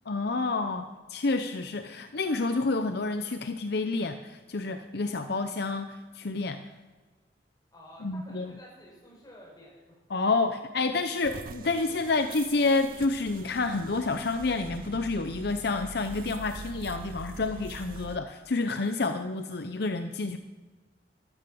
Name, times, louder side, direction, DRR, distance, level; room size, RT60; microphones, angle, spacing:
voice 1, 0.1-6.6 8.0-8.5 10.1-20.4, left 3 dB, 60° left, 8 dB, 0.7 m, -29 dB
voice 2, 7.7-10.0, equal, 20° left, -3 dB, 5.8 m, -51 dB
sound 1, 11.2-18.2, right 4 dB, 50° right, 0.5 m, -44 dB
12.5 x 12.5 x 7.0 m, 1.3 s
head